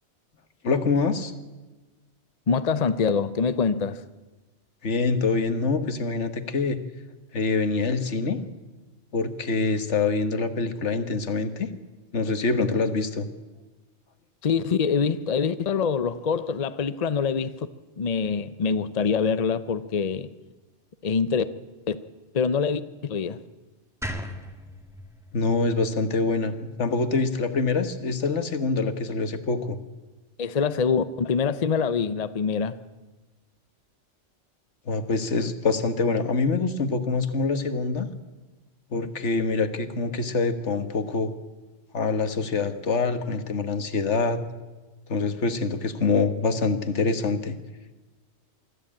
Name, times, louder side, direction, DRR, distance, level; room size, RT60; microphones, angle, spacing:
voice 1, 0.6-1.3 4.8-6.8 7.3-8.4 9.1-11.7 12.1-13.3 25.3-29.8 34.9-38.1 38.9-41.3 41.9-44.4 45.1-47.6, left 4 dB, 75° left, 1.7 m, -25 dB
voice 2, 2.5-4.0 14.4-17.7 18.0-20.3 21.0-21.4 21.9-22.0 22.3-23.4 30.4-32.8, left 5 dB, 40° left, 0.7 m, -25 dB
sound 1, 24.0-27.2, equal, ahead, 1.6 m, -38 dB
24.0 x 13.5 x 8.7 m
omnidirectional pair, 1.2 m